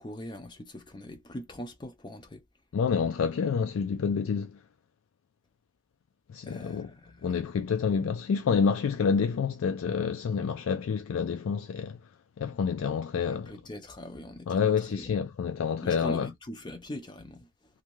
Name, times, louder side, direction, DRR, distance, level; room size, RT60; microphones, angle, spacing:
voice 1, 0.0-2.4 6.5-7.4 13.2-15.1 15.8-17.5, left 1 dB, 20° left, 0.4 m, -42 dB
voice 2, 2.7-4.6 6.3-6.9 7.2-12.0 12.4-13.5 14.5-16.3, left 6 dB, 85° left, 0.3 m, -28 dB
2.6 x 2.2 x 3.0 m
head